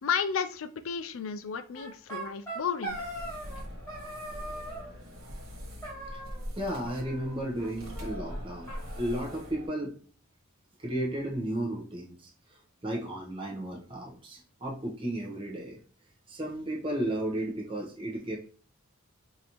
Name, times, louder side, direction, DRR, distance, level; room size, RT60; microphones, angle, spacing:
voice 1, 0.0-3.1, left 6 dB, 65° left, 10 dB, 0.4 m, -32 dB
sound 1, 1.7-3.6 3.9-4.9 5.8-6.6 6.9-7.7 7.9-8.0 8.3-8.4 8.7-9.7, right 2 dB, 10° left, 1.5 m, -41 dB
sound 2, 2.9-9.7, equal, 60° right, 1.5 m, -42 dB
voice 2, 6.6-10.0 10.8-15.8 16.3-18.4, right 1 dB, 25° right, -2 dB, 0.9 m, -34 dB
5.1 x 2.7 x 2.9 m, 0.41 s
head